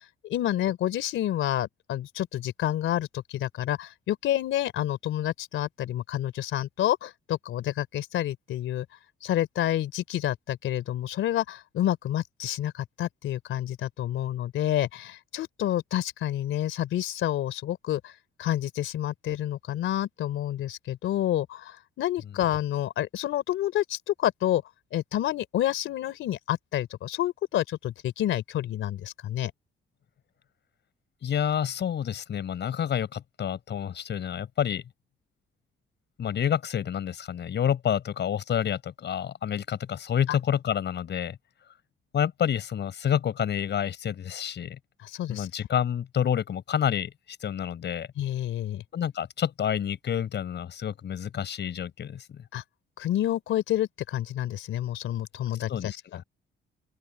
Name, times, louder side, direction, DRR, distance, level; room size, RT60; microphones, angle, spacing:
voice 1, 0.2-8.9 9.2-18.1 18.4-24.6 24.9-29.5 45.0-45.5 48.2-48.8 52.5-52.6 53.0-55.9, left 12 dB, 80° left, 3.4 m, -29 dB
voice 2, 31.2-34.8 36.2-41.4 42.1-44.8 45.3-47.1 47.4-48.1 48.9-52.5 55.7-56.2, left 9 dB, 60° left, 6.5 m, -28 dB
open air
cardioid pair, 90°, 20 cm